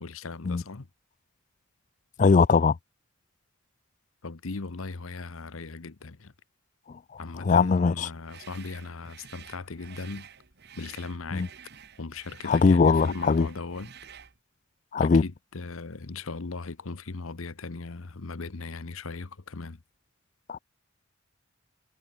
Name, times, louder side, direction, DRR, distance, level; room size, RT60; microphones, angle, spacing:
voice 1, 0.0-0.9 4.2-6.3 7.2-10.3 10.8-11.5 12.0-13.9 15.0-19.8, left 3 dB, 75° left, 1.0 m, -38 dB
voice 2, 2.2-2.8 6.9-8.1 11.3-11.5 12.4-13.5 14.9-15.2 20.5-20.6, left 4 dB, 35° left, 0.4 m, -21 dB
sound 1, 8.2-14.4, right 8 dB, 50° right, 1.6 m, -50 dB
head